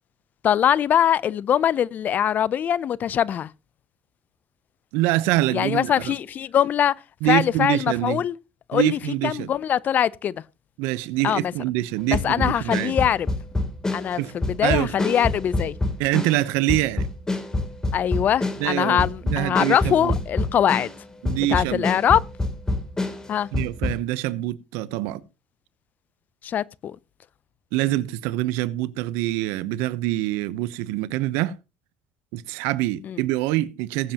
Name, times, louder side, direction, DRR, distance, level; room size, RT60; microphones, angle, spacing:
voice 1, 0.4-3.5 5.5-6.9 7.2-8.4 8.7-10.4 11.2-11.5 12.2-13.3 13.9-15.8 17.9-20.9 21.5-22.2 23.3-23.5 26.4-27.0 33.0-33.2, left 9 dB, 45° left, 0.5 m, -22 dB
voice 2, 4.9-6.1 7.2-8.2 8.7-9.5 10.8-13.0 14.2-14.9 16.0-17.1 18.6-20.1 21.2-21.9 23.5-25.2 27.7-31.5 32.3-34.1, right 16 dB, 80° right, 0.8 m, -25 dB
sound 1, 12.1-21.0 21.3-24.0, left 2 dB, 15° left, 3.0 m, -26 dB
20.5 x 7.6 x 2.9 m
supercardioid pair, 105°, 4 cm